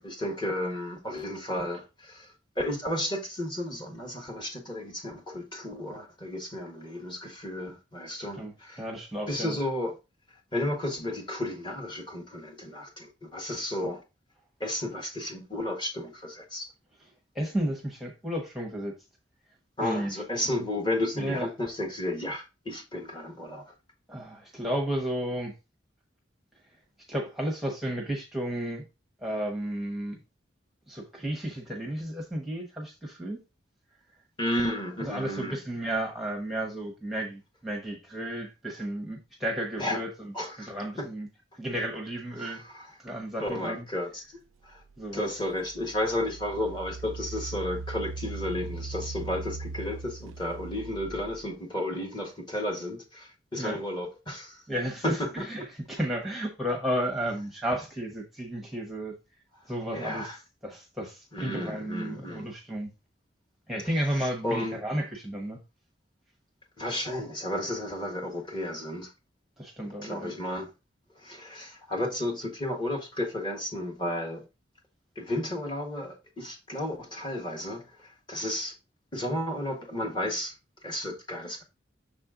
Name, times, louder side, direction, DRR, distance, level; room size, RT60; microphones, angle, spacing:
voice 1, 0.0-8.9 9.3-9.9 10.5-14.0 14.6-16.7 19.8-23.7 34.4-35.6 39.8-40.0 40.3-40.7 41.0-41.1 42.4-42.9 43.4-44.4 44.6-44.8 45.1-54.6 55.0-55.4 59.9-60.4 61.3-62.5 64.2-64.8 66.8-69.1 70.0-70.7 71.2-74.4 75.1-78.7 79.1-80.5 80.8-81.6, left 1 dB, 25° left, 1.4 m, -33 dB
voice 2, 8.8-9.6 17.3-18.9 19.8-20.1 20.5-20.6 21.2-21.5 24.1-25.5 27.1-28.8 29.2-30.2 30.9-33.4 35.0-40.1 40.6-41.3 41.6-42.6 43.0-43.8 45.0-45.3 53.6-53.8 54.7-59.2 59.7-60.3 60.6-62.9 63.7-65.6 69.6-70.3, right 1 dB, ahead, 1.0 m, -33 dB
Engine, 44.8-44.9 45.5-51.5, right 3 dB, 85° right, 0.4 m, -39 dB
6.5 x 4.3 x 3.7 m
head